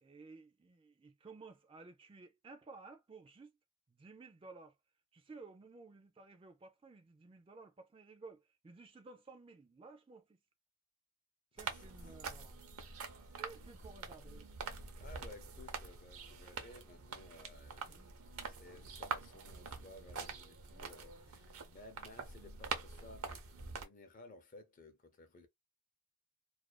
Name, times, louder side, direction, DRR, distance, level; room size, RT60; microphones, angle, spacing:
voice 1, 0.0-3.6 3.9-4.8 5.1-10.4 11.5-12.6 13.4-14.7 17.9-18.1 21.2-21.3, right 3 dB, 25° right, 0.3 m, -55 dB
sound 1, 11.6-23.8, right 5 dB, 75° right, 0.6 m, -45 dB
voice 2, 15.0-25.5, left 2 dB, 35° left, 0.5 m, -57 dB
2.4 x 2.2 x 2.3 m
head